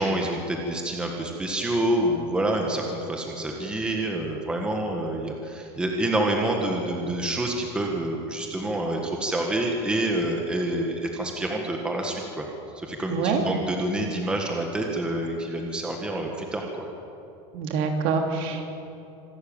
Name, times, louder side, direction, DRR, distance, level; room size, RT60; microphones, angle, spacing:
voice 1, 0.0-12.5 12.7-16.9, right 1 dB, 5° right, 1 dB, 1.6 m, -27 dB
voice 2, 13.1-13.4 17.5-18.6, right 5 dB, 55° right, 3 dB, 3.1 m, -25 dB
26.0 x 13.0 x 8.8 m, 2.8 s
cardioid pair, 180°, 14 cm